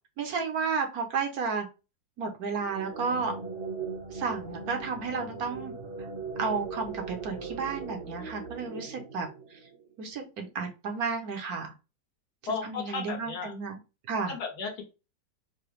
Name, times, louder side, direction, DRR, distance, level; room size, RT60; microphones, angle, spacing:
voice 1, 0.2-1.7 2.2-3.3 4.1-5.7 6.4-9.6 10.0-11.7 12.6-13.8 14.1-14.3, right 5 dB, 65° right, 3 dB, 1.2 m, -32 dB
sound 1, 2.5-9.9, right 4 dB, 50° right, 0.9 m, -39 dB
voice 2, 12.5-13.5 14.3-14.8, left 5 dB, 65° left, 2 dB, 1.5 m, -34 dB
4.8 x 2.2 x 3.1 m, 0.29 s
omnidirectional pair, 1.8 m